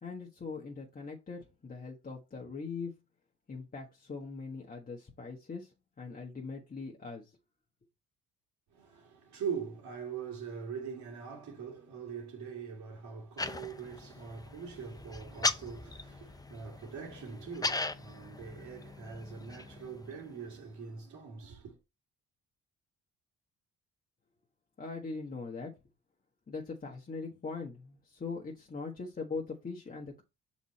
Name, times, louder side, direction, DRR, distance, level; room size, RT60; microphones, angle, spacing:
voice 1, 0.0-3.0 3.5-7.3 24.8-25.7 26.5-30.2, left 4 dB, 30° left, 1.5 m, -41 dB
voice 2, 8.7-21.8, right 6 dB, 75° right, 2.4 m, -42 dB
sound 1, 13.4-20.6, left 3 dB, 15° left, 0.7 m, -39 dB
5.9 x 4.3 x 4.3 m
supercardioid pair, 75°, 30 cm